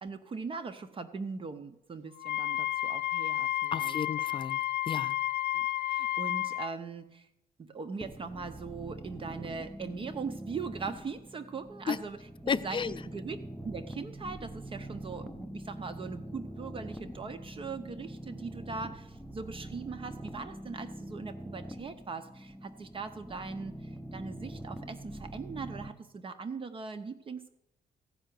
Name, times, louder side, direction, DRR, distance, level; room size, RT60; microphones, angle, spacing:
voice 1, 0.0-4.0 5.5-7.3 7.6-13.4 13.6-27.5, right 5 dB, 35° right, 10 dB, 0.7 m, -40 dB
Wind instrument woodwind instrument, 2.2-6.7, left 14 dB, 85° left, 0.6 m, -31 dB
voice 2, 3.7-5.2 11.9-12.0 12.5-12.9, left 6 dB, 30° left, 14 dB, 0.4 m, -33 dB
sound 1, 8.0-25.9, right 1 dB, ahead, 0.7 m, -44 dB
15.0 x 5.6 x 9.2 m, 0.86 s
cardioid pair, 140°, 16 cm